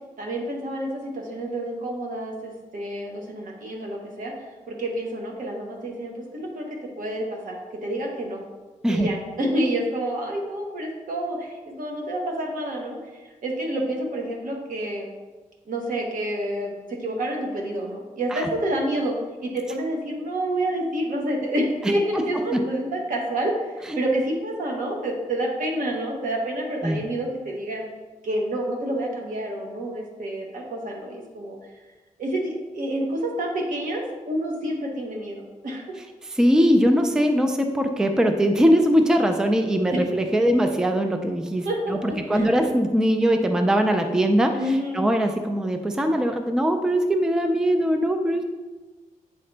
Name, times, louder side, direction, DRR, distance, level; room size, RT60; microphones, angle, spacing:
voice 1, 0.2-4.3 4.7-6.6 7.0-8.4 8.9-15.1 15.6-19.2 19.4-27.9 28.2-31.6 32.2-36.0 39.9-40.0 41.6-42.5 44.5-45.0, right 1 dB, 75° right, 0 dB, 1.3 m, -28 dB
voice 2, 36.4-48.4, equal, 5° right, 6 dB, 0.4 m, -21 dB
8.5 x 3.8 x 3.3 m, 1.2 s
wide cardioid pair, 150°, 14 cm